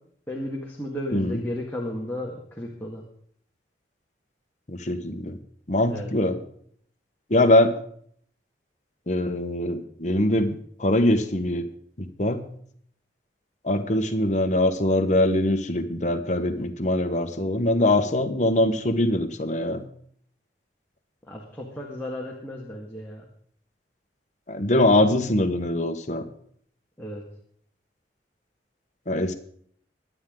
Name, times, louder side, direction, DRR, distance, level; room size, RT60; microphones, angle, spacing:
voice 1, 0.3-3.0 5.9-6.1 21.3-23.2 27.0-27.2, left 1 dB, 10° left, -2 dB, 1.9 m, -34 dB
voice 2, 4.7-5.4 5.7-6.4 7.3-7.7 9.1-11.6 12.0-12.4 13.6-19.8 24.5-26.3 29.1-29.3, left 1 dB, 40° left, 6 dB, 1.3 m, -23 dB
23.5 x 9.2 x 3.9 m, 0.62 s
head